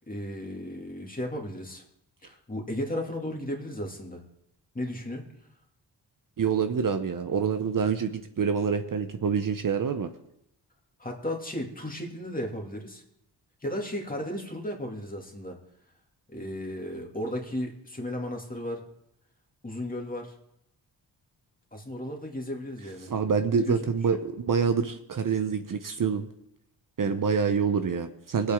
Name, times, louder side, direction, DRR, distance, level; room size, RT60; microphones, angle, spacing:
voice 1, 0.1-1.8 2.2-4.2 4.7-5.2 11.0-13.0 13.6-15.6 16.3-18.8 19.6-20.3 21.7-23.1 23.6-23.8 24.1-24.2 27.0-27.2, left 1 dB, 20° left, 1 dB, 2.4 m, -35 dB
voice 2, 6.4-10.1 23.1-26.3 27.0-28.5, right 6 dB, 50° right, 8 dB, 0.8 m, -26 dB
21.5 x 8.2 x 3.7 m, 0.78 s
wide cardioid pair, 95°, 43 cm